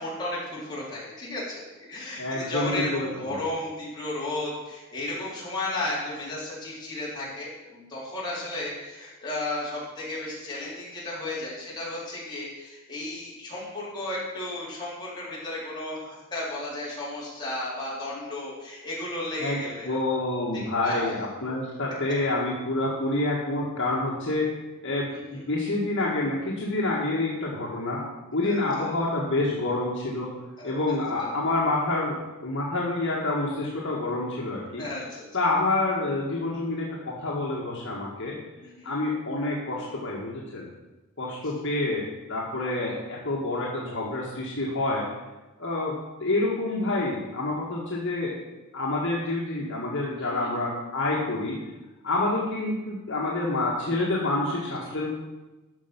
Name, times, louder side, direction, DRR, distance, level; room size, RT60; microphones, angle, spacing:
voice 1, 0.0-1.6 1.9-20.2 20.5-21.2 21.4-21.6 25.1-25.4 28.4-28.9 30.6-30.7 31.2-31.3 34.8-35.3 38.6-38.9 50.2-50.5 54.9-55.0, left 2 dB, 20° left, -7 dB, 4.0 m, -34 dB
voice 2, 2.2-3.4 19.4-24.5 24.8-30.3 30.6-32.2 32.4-34.8 35.3-38.4 38.8-40.7 41.2-42.0 42.3-45.1 45.6-45.9 46.2-48.4 48.7-51.6 52.0-55.2, left 2 dB, 60° left, -4 dB, 1.8 m, -28 dB
13.5 x 5.9 x 6.0 m, 1.1 s
head